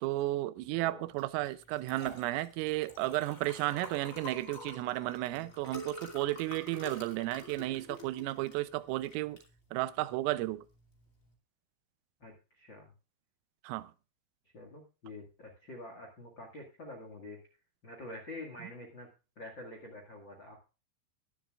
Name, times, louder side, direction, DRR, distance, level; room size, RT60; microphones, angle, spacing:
voice 1, 0.0-9.4 9.7-10.6 13.7-13.9, right 17 dB, 85° right, 3.3 m, -33 dB
voice 2, 0.7-1.1 5.3-5.5 12.2-12.9 14.5-17.4 17.8-19.1 19.3-20.6, left 1 dB, 75° left, 1.0 m, -47 dB
Liquid, 1.1-11.3, left 2 dB, 30° left, 1.5 m, -49 dB
21.5 x 7.4 x 2.4 m
omnidirectional pair, 5.8 m